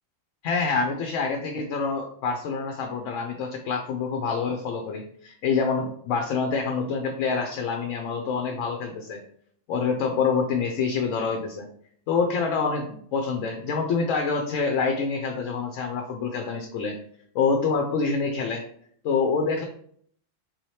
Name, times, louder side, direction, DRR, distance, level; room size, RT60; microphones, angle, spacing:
voice 1, 0.4-9.2 9.7-11.7 12.1-16.9 17.3-18.6 19.0-19.6, left 5 dB, 85° left, 3 dB, 0.9 m, -26 dB
4.0 x 2.8 x 3.1 m, 0.62 s
omnidirectional pair, 1.3 m